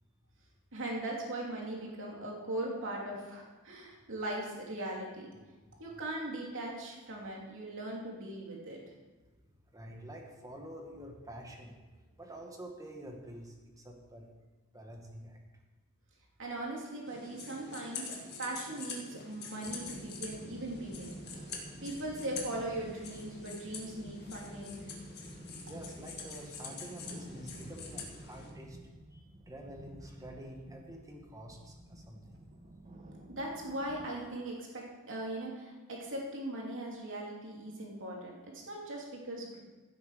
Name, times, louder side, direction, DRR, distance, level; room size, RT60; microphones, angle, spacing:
voice 1, 0.7-5.3 5.8-8.8 16.4-21.5 21.8-24.9 33.3-39.6, right 1 dB, 60° right, -2 dB, 2.9 m, -39 dB
voice 2, 9.7-14.3 14.7-15.4 25.7-28.8 29.1-32.5, right 1 dB, 15° right, 1 dB, 1.7 m, -48 dB
sound 1, 17.1-28.5, left 4 dB, 50° left, 2.0 m, -46 dB
sound 2, 19.6-34.1, right 1 dB, 30° right, 1.1 m, -51 dB
16.0 x 7.9 x 5.0 m, 1.2 s
head